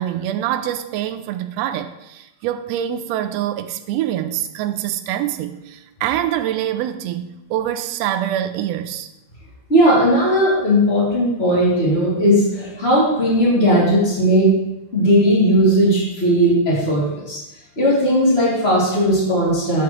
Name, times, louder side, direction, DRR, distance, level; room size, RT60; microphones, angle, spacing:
voice 1, 0.0-9.1, right 11 dB, 80° right, 8 dB, 1.5 m, -25 dB
voice 2, 9.7-14.5 14.9-17.4 17.8-19.8, equal, 20° left, -6 dB, 2.9 m, -17 dB
9.7 x 7.6 x 3.1 m, 0.97 s
omnidirectional pair, 3.4 m